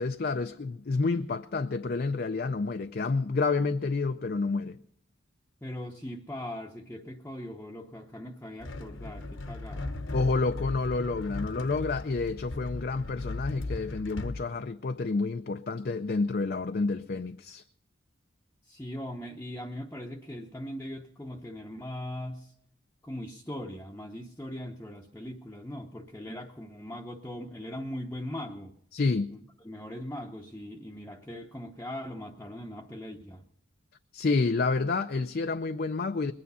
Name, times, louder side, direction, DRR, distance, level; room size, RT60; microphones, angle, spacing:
voice 1, 0.0-4.8 10.1-17.6 28.9-29.3 34.1-36.3, left 3 dB, 45° left, 0.5 m, -29 dB
voice 2, 5.6-10.0 18.7-22.5 23.0-28.8 29.3-33.4, left 1 dB, 10° left, 0.8 m, -40 dB
sound 1, 8.6-14.4, left 2 dB, 75° left, 1.2 m, -37 dB
21.0 x 9.5 x 5.5 m
head